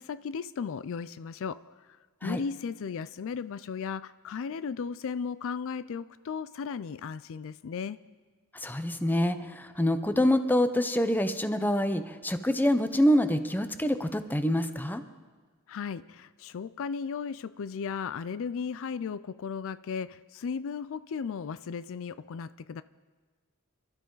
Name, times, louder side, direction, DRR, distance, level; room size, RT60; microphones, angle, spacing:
voice 1, 0.0-1.6 2.2-8.0 15.7-22.8, left 6 dB, 65° left, 15 dB, 0.4 m, -35 dB
voice 2, 8.6-15.0, left 1 dB, 10° left, 10 dB, 0.7 m, -26 dB
28.0 x 12.5 x 3.9 m, 1.5 s
head